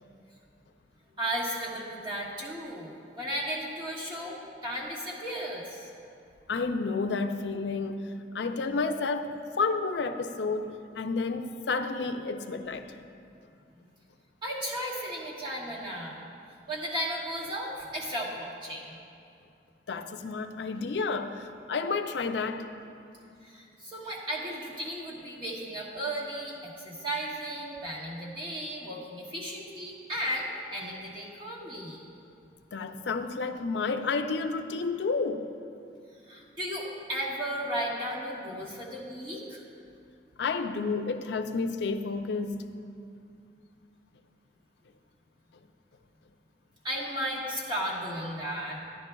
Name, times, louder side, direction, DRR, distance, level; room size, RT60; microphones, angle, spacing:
voice 1, 1.2-5.9 13.8-13.9 14.4-16.2 16.7-19.0 20.8-20.9 23.4-32.0 36.3-39.6 46.8-48.8, equal, 25° right, -4 dB, 1.3 m, -35 dB
voice 2, 6.5-12.9 19.9-22.7 32.7-35.5 40.4-42.6, left 4 dB, 75° left, 8 dB, 0.5 m, -31 dB
12.0 x 11.0 x 2.3 m, 2.5 s
head